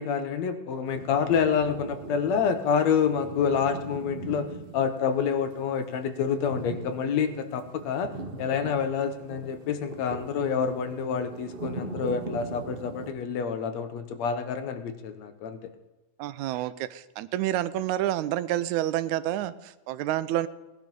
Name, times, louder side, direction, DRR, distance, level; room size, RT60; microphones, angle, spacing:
voice 1, 0.0-4.5 4.7-8.1 8.4-15.7, left 6 dB, 70° left, 9 dB, 2.1 m, -27 dB
thunder - rain - lightning, 0.8-13.1, right 2 dB, 25° right, 1.3 m, -41 dB
voice 2, 16.2-20.5, right 13 dB, 85° right, 15 dB, 2.0 m, -29 dB
18.5 x 11.0 x 5.4 m, 1.1 s
omnidirectional pair, 3.3 m